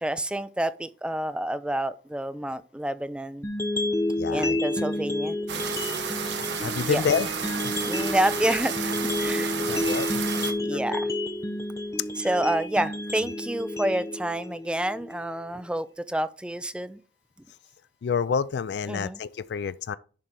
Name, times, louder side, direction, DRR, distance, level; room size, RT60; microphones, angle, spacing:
voice 1, 0.0-3.5 4.3-5.4 6.8-7.0 7.8-9.5 10.1-10.2 10.6-11.1 12.2-17.0 18.9-19.2, right 1 dB, 5° right, 0.4 m, -29 dB
sound 1, 3.4-15.4, left 1 dB, 15° left, 0.7 m, -30 dB
voice 2, 4.2-4.6 6.6-7.3 9.7-10.1 10.7-11.0 12.2-12.3 18.0-20.0, left 6 dB, 65° left, 0.4 m, -28 dB
sound 2, 5.5-10.5, right 6 dB, 75° right, 1.0 m, -31 dB
10.5 x 4.5 x 3.7 m
head